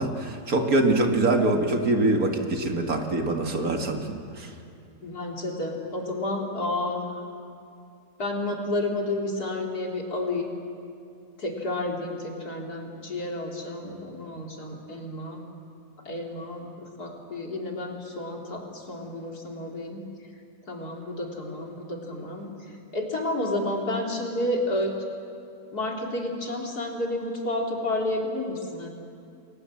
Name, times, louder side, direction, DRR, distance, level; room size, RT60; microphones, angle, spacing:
voice 1, 0.0-4.1 4.4-4.5, right 2 dB, 60° right, 3 dB, 2.3 m, -24 dB
voice 2, 5.0-7.1 8.2-10.5 11.4-15.4 16.1-16.7 17.0-20.0 20.7-22.5 22.9-24.9 25.7-28.9, left 1 dB, 70° left, 0 dB, 3.9 m, -30 dB
29.5 x 21.0 x 7.7 m, 2.5 s
omnidirectional pair, 1.7 m